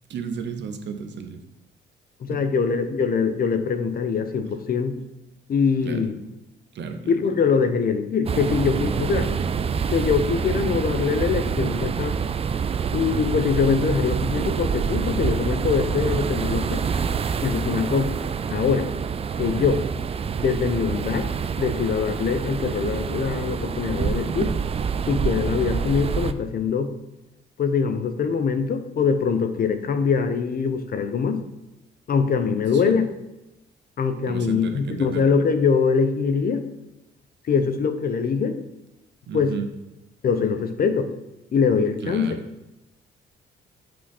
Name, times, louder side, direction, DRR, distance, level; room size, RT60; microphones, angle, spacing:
voice 1, 0.1-1.4 2.3-2.5 5.8-6.2 6.7-7.1 19.4-19.8 32.7-33.0 34.3-35.3 39.3-39.7 42.0-42.4, right 6 dB, 65° right, 6 dB, 0.8 m, -33 dB
voice 2, 2.2-5.0 5.5-6.1 7.1-9.3 9.9-12.2 12.9-16.8 17.4-18.1 18.5-18.9 19.4-19.8 20.4-21.3 21.6-24.5 25.1-26.9 27.6-31.4 32.1-33.1 34.0-36.6 37.5-38.6 39.3-39.5 40.2-41.1 41.5-42.3, left 5 dB, 50° left, 9 dB, 0.7 m, -23 dB
sound 1, 8.3-26.3, right 6 dB, 30° right, 0.3 m, -26 dB
7.5 x 3.8 x 4.3 m, 0.96 s
cardioid pair, 90°, 20 cm